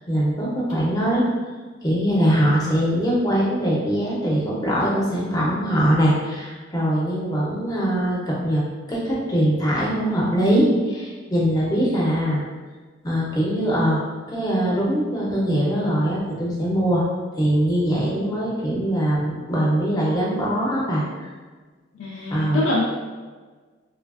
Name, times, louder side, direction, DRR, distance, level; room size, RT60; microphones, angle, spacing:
voice 1, 0.1-1.2 1.8-8.6 8.9-12.4 13.0-14.0 14.3-21.3 22.3-22.6, equal, 20° left, -5 dB, 0.6 m, -22 dB
voice 2, 21.9-22.8, left 2 dB, 70° left, -5 dB, 0.4 m, -24 dB
3.2 x 2.4 x 2.3 m, 1.4 s
head